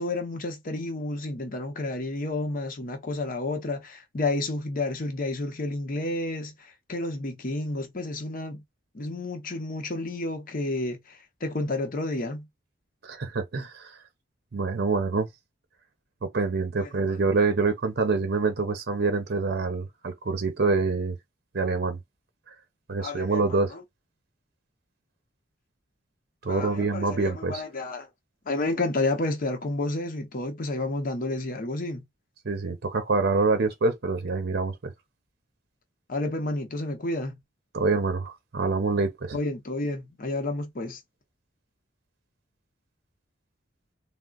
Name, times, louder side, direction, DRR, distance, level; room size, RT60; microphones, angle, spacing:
voice 1, 0.0-8.6 8.9-12.5 16.8-17.2 23.0-23.8 26.5-28.1 28.4-32.0 36.1-37.4 39.3-41.0, left 2 dB, 50° left, 0.8 m, -31 dB
voice 2, 13.0-14.0 14.5-15.3 16.2-21.1 21.5-22.0 22.9-23.7 26.4-27.6 32.4-34.9 37.7-39.4, right 3 dB, 60° right, 0.6 m, -26 dB
3.6 x 2.1 x 2.3 m
head